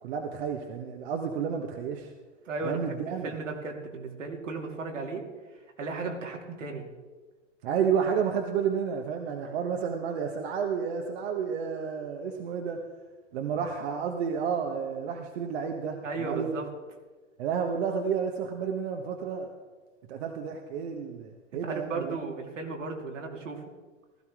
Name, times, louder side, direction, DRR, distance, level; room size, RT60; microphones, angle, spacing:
voice 1, 0.0-2.1 2.6-3.3 7.6-12.8 13.3-16.6 17.4-19.5 20.1-22.2, right 7 dB, 55° right, 3 dB, 1.3 m, -31 dB
voice 2, 2.5-3.0 3.2-5.2 5.8-6.8 16.0-16.7 21.6-23.6, right 3 dB, 75° right, 1 dB, 2.7 m, -35 dB
16.0 x 14.0 x 3.7 m, 1.3 s
hypercardioid pair, 110°, 38 cm